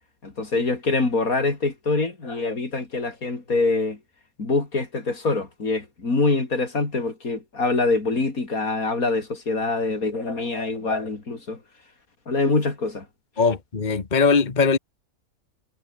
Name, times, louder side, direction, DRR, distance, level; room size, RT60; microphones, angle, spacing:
voice 1, 0.2-4.0 4.4-11.6 12.3-13.1, left 3 dB, 75° left, 4.2 m, -24 dB
voice 2, 13.4-14.8, left 4 dB, 30° left, 1.5 m, -20 dB
omnidirectional pair, 1.5 m